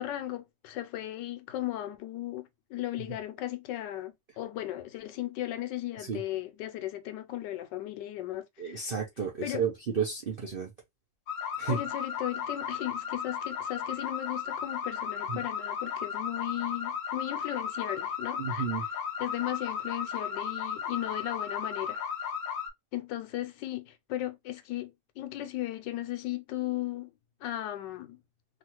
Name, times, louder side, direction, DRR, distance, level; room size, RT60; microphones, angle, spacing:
voice 1, 0.0-9.0 9.4-9.7 11.7-18.9 19.2-22.1 22.9-27.1 27.4-28.2, left 14 dB, 85° left, 1.3 m, -36 dB
voice 2, 8.6-10.7 11.6-11.8 15.3-15.4 18.4-18.8, right 6 dB, 70° right, 0.5 m, -32 dB
sound 1, 11.3-22.7, left 7 dB, 60° left, 0.9 m, -35 dB
3.1 x 2.4 x 2.9 m
omnidirectional pair, 1.9 m